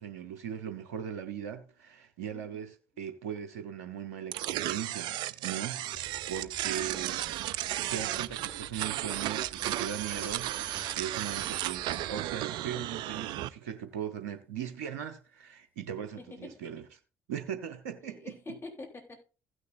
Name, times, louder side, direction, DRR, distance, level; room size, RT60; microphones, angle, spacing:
voice 1, 0.0-5.1 5.4-7.2 7.8-10.6 10.9-16.8 17.3-18.2, right 9 dB, 90° right, 0.9 m, -39 dB
voice 2, 2.3-2.7 16.2-16.5 18.0-19.2, left 3 dB, 30° left, 3.6 m, -46 dB
sound 1, 4.3-13.5, right 15 dB, 70° right, 0.4 m, -34 dB
sound 2, 5.9-12.4, right 2 dB, 20° right, 1.7 m, -50 dB
16.0 x 6.4 x 2.6 m
hypercardioid pair, 55°, 8 cm